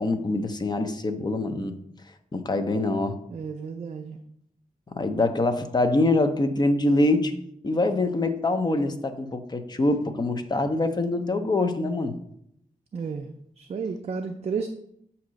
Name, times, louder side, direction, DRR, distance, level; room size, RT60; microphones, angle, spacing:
voice 1, 0.0-1.8 2.3-3.2 4.9-7.3 7.6-12.1, left 2 dB, 30° left, 7 dB, 0.6 m, -24 dB
voice 2, 3.3-4.2 12.9-13.3 13.6-14.7, right 5 dB, 45° right, 6 dB, 0.4 m, -32 dB
8.3 x 2.9 x 6.2 m, 0.73 s
wide cardioid pair, 135°, 15 cm